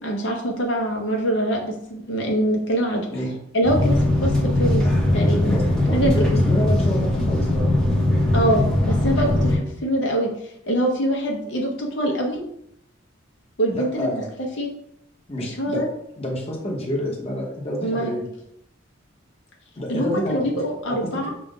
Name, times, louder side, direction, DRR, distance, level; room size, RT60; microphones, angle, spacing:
voice 1, 0.0-3.1 3.5-4.9 5.1-5.6 5.9-6.1 8.3-12.4 13.6-14.1 14.6-14.7 15.4-15.9 17.8-18.1 19.9-21.3, right 1 dB, 60° left, 1 dB, 0.8 m, -24 dB
sound 1, 3.6-9.6, left 1 dB, 5° left, 0.7 m, -20 dB
voice 2, 5.5-7.7 13.7-14.3 15.3-15.8 16.2-18.2 19.8-20.6 20.9-21.0, left 1 dB, 30° left, -2 dB, 0.9 m, -28 dB
5.7 x 2.5 x 3.7 m, 0.74 s
head